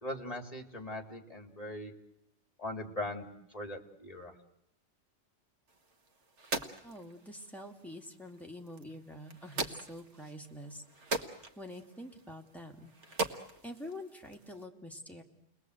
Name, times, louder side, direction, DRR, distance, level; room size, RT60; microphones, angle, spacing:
voice 1, 0.0-1.9 2.6-4.3, left 1 dB, 30° left, 5 dB, 2.7 m, -40 dB
sound 1, 5.7-14.7, right 3 dB, 60° right, 1.8 m, -42 dB
voice 2, 6.8-10.8 11.1-12.9 13.6-15.2, left 1 dB, ahead, 1 dB, 2.4 m, -46 dB
29.5 x 21.0 x 8.0 m, 0.82 s
omnidirectional pair, 1.3 m